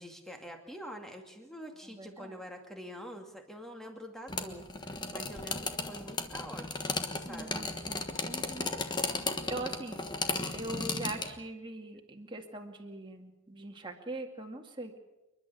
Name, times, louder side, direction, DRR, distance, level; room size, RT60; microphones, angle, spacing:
voice 1, 0.0-7.7, equal, ahead, 3 dB, 2.3 m, -46 dB
voice 2, 1.9-2.4 7.3-8.7 9.5-10.0 10.5-14.9, right 2 dB, 20° right, 2 dB, 2.2 m, -42 dB
sound 1, 4.3-11.3, left 3 dB, 20° left, 1.3 m, -35 dB
29.0 x 11.5 x 8.4 m, 1.0 s
head